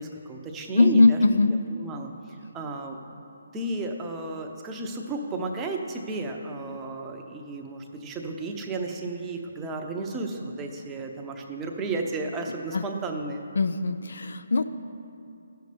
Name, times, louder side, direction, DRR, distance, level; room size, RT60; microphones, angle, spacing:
voice 1, 0.0-1.2 1.7-3.1 3.5-13.5, right 3 dB, 15° right, 2 dB, 0.8 m, -33 dB
voice 2, 0.8-1.5 12.7-12.8 13.6-14.6, left 3 dB, 70° left, 10 dB, 0.5 m, -20 dB
14.5 x 6.6 x 3.4 m, 2.6 s
hypercardioid pair, 150°, 0 cm